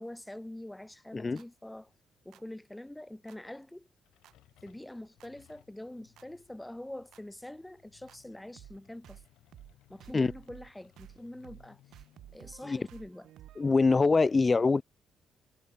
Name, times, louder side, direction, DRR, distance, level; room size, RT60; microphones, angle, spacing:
voice 1, 0.0-1.9 2.2-3.9 4.6-9.2 9.9-12.0 12.3-13.3, left 1 dB, 5° left, 4.8 m, -45 dB
sound 1, 1.4-1.5 2.3-2.4 3.3-3.4 4.2-4.3 5.2-5.3 6.2-6.3 7.1-7.2 8.1-8.2 8.6-8.8 9.0-9.3 9.5-9.7 10.0-10.7 11.0-11.2 11.4-11.7 11.9-13.8, right 13 dB, 80° right, 2.0 m, -53 dB
sound 2, 3.8-14.2, left 15 dB, 90° left, 4.6 m, -65 dB
voice 2, 13.6-14.8, left 4 dB, 30° left, 0.5 m, -24 dB
cardioid pair, 90°, 0 cm